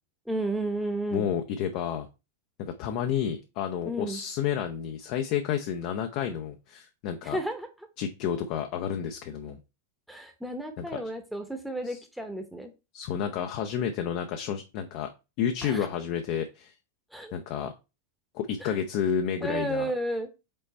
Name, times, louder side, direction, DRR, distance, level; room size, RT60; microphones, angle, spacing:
voice 1, 0.3-1.3 3.8-4.2 7.2-7.7 10.1-12.7 15.6-15.9 17.1-17.3 18.6-18.7 19.4-20.3, right 1 dB, ahead, 6 dB, 1.0 m, -32 dB
voice 2, 1.1-2.1 2.6-7.4 8.0-9.6 10.8-11.0 11.8-12.0 12.9-15.1 15.4-16.7 17.3-17.7 18.3-19.9, left 8 dB, 45° left, 5 dB, 0.7 m, -30 dB
5.4 x 4.2 x 4.2 m, 0.28 s
figure-of-eight pair, 90°, 0 cm